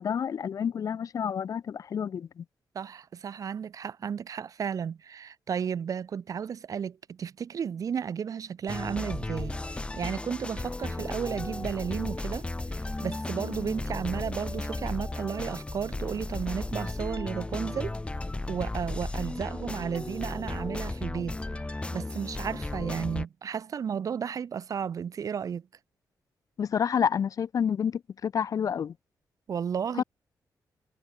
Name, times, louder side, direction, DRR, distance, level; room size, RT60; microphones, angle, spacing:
voice 1, 0.0-2.4 26.6-28.9 30.0-30.1, left 7 dB, 55° left, 0.7 m, -29 dB
voice 2, 2.7-12.4 13.0-18.0 18.5-21.4 21.9-25.6 29.5-30.0, right 7 dB, 55° right, 0.9 m, -33 dB
sound 1, 8.7-23.3, left 2 dB, 15° left, 1.0 m, -35 dB
cardioid pair, 110°, 7 cm